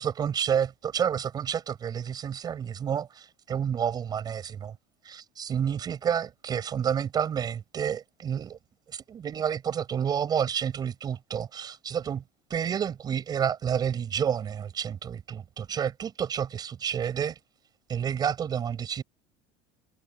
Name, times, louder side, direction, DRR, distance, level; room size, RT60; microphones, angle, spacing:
voice 1, 0.0-4.8 5.0-8.6 8.9-12.2 12.5-17.4 17.9-19.0, right 8 dB, 25° right, 5.4 m, -29 dB
cardioid pair, 170°, 17 cm